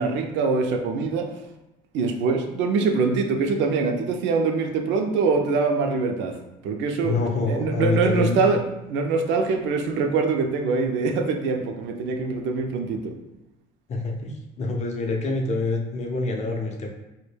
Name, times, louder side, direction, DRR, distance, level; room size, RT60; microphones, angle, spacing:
voice 1, 0.0-1.3 1.9-6.4 6.6-7.2 7.5-13.1, right 4 dB, 65° right, 4 dB, 0.4 m, -24 dB
voice 2, 7.0-8.5 13.9-16.9, left 3 dB, 35° left, 2 dB, 0.5 m, -26 dB
2.1 x 2.1 x 3.1 m, 0.95 s
supercardioid pair, 85°, 20 cm